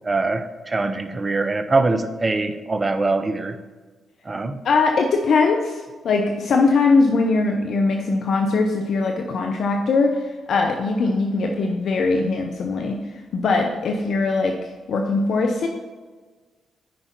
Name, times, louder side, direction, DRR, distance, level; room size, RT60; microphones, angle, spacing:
voice 1, 0.0-3.6 4.3-4.6, right 3 dB, 35° right, 10 dB, 0.8 m, -23 dB
voice 2, 4.6-13.0 13.3-15.7, left 3 dB, 70° left, 3 dB, 0.8 m, -21 dB
9.3 x 5.6 x 4.6 m, 1.4 s
hypercardioid pair, 45°, 0 cm